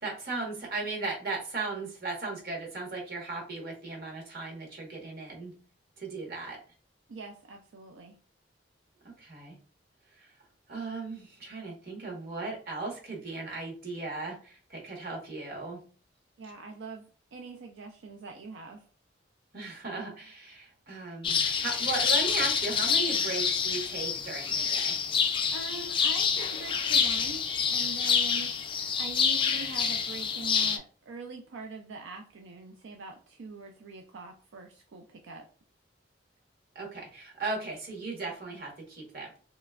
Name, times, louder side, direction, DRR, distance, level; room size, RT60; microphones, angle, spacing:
voice 1, 0.0-5.6 6.0-6.6 9.0-9.6 10.2-10.3 10.7-15.8 19.5-25.0 36.7-39.4, right 3 dB, 55° right, -1 dB, 1.3 m, -37 dB
voice 2, 7.1-8.2 16.4-17.1 17.3-18.8 25.5-35.5, right 3 dB, 85° right, 3 dB, 0.4 m, -43 dB
sound 1, 21.2-30.8, left 6 dB, 30° left, 0.3 m, -27 dB
3.2 x 2.9 x 2.4 m, 0.40 s
head